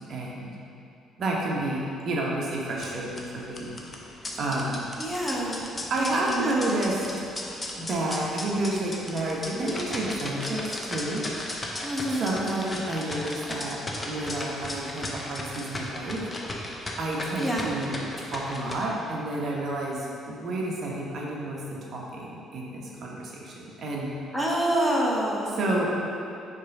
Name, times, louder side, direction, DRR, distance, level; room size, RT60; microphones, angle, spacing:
voice 1, 0.1-0.6 1.2-3.7 4.4-4.8 5.9-7.3 7.8-11.2 12.1-13.8 14.1-16.2 17.0-21.6 21.9-24.1 25.6-25.9, right 2 dB, 50° right, -3 dB, 1.1 m, -30 dB
sound 1, 2.7-18.7, left 1 dB, 20° left, 0.8 m, -36 dB
voice 2, 5.0-5.7 6.0-6.8 11.8-12.3 17.4-17.7 24.3-25.6, right 1 dB, 5° left, -5 dB, 1.1 m, -27 dB
5.2 x 4.4 x 5.3 m, 2.7 s
cardioid pair, 115°, 0 cm